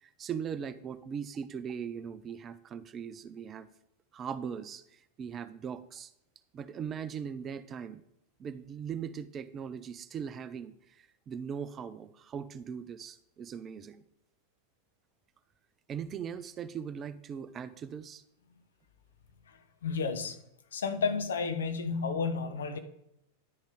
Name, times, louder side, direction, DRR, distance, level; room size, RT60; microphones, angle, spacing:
voice 1, 0.0-3.7 4.1-6.1 6.5-8.0 8.4-14.0 15.9-18.2, right 7 dB, 25° right, 14 dB, 0.5 m, -40 dB
voice 2, 19.8-20.4 20.7-22.8, left 5 dB, 65° left, 8 dB, 1.0 m, -31 dB
10.5 x 5.2 x 5.0 m, 0.82 s
figure-of-eight pair, 90°, 0 cm